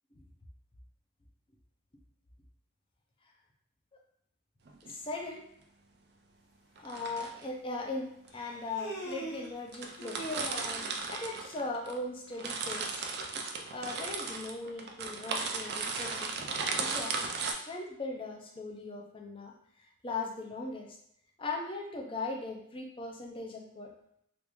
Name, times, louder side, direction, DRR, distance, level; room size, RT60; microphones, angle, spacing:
sound 1, 4.7-4.9 6.8-7.4 8.3-8.4 9.1-9.2 9.4-9.5 9.7-12.0 12.3-17.5, right 4 dB, 50° right, 0.4 m, -36 dB
voice 1, 4.8-5.4 6.8-10.2 10.6-13.0 13.7-16.4 16.7-17.1 17.6-19.5 20.0-20.9 21.4-23.9, left 3 dB, 25° left, 0 dB, 0.5 m, -39 dB
Human voice, 7.0-7.1 8.3-9.5 10.0-11.0, equal, 60° left, 1.0 m, -40 dB
3.4 x 2.5 x 3.0 m, 0.71 s
head